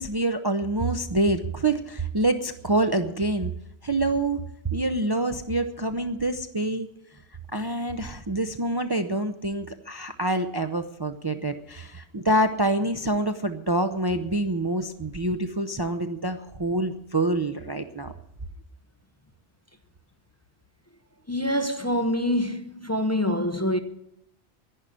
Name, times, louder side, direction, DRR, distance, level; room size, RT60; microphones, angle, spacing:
voice 1, 0.0-3.5 3.8-4.4 4.7-6.9 7.5-18.1, right 2 dB, 25° right, 0.6 m, -26 dB
voice 2, 21.3-23.8, left 1 dB, 15° left, 0.8 m, -25 dB
11.0 x 10.5 x 9.9 m
omnidirectional pair, 1.1 m